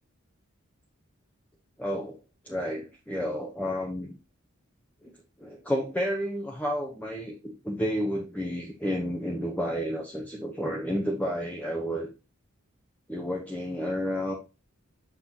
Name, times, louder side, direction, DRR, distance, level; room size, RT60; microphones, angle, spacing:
voice 1, 1.8-2.2 2.4-4.2 5.0-5.1 5.4-12.1 13.1-14.3, equal, 5° left, 0 dB, 0.8 m, -31 dB
6.2 x 6.0 x 2.8 m, 0.30 s
head